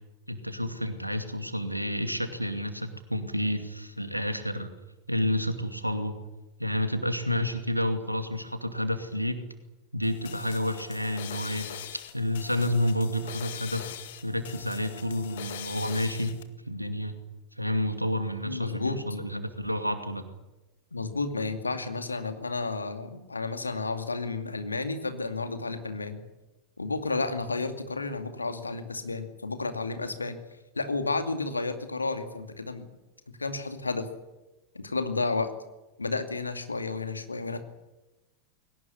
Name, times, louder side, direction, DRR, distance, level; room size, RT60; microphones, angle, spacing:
voice 1, 0.3-4.7 5.1-6.2 6.6-9.4 9.9-11.7 12.1-13.9 14.2-16.3 16.7-17.1 17.6-20.3, left 1 dB, 90° right, 8 dB, 2.5 m, -30 dB
sound 1, 10.0-16.4, left 11 dB, 55° left, 1.9 m, -42 dB
voice 2, 18.4-19.0 20.9-26.2 26.8-30.4 30.7-32.8 33.4-34.1 34.7-35.5 36.0-37.6, left 3 dB, 80° left, 8 dB, 2.4 m, -31 dB
21.5 x 18.5 x 9.8 m, 1.1 s
figure-of-eight pair, 90°, 0 cm